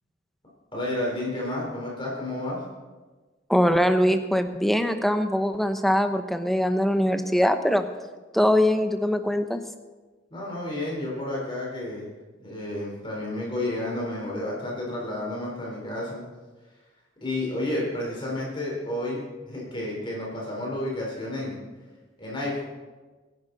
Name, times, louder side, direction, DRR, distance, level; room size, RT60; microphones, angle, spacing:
voice 1, 0.7-2.6 10.3-12.1 12.4-16.2 17.2-21.6 22.2-22.7, left 1 dB, 25° left, -4 dB, 4.0 m, -31 dB
voice 2, 3.5-7.9 8.3-9.6, equal, ahead, 7 dB, 0.8 m, -22 dB
25.0 x 11.0 x 4.1 m, 1.3 s
head